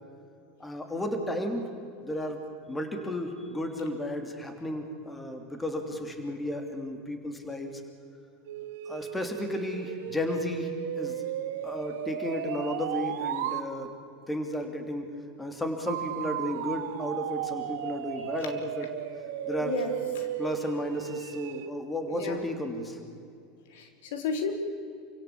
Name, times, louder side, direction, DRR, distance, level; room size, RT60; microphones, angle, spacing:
voice 1, 0.6-1.7 2.0-2.4 2.7-7.8 8.9-10.7 11.0-11.2 11.6-13.9 14.3-15.1 15.4-18.9 19.5-19.8 20.4-23.0, left 1 dB, 10° left, 5 dB, 3.1 m, -33 dB
sound 1, 8.5-13.7 15.9-21.7, right 11 dB, 80° right, 1.8 m, -35 dB
voice 2, 19.6-20.3 22.1-22.4 23.7-24.5, left 4 dB, 75° left, 6 dB, 3.5 m, -33 dB
28.0 x 17.0 x 8.8 m, 2.4 s
supercardioid pair, 120°, 0 cm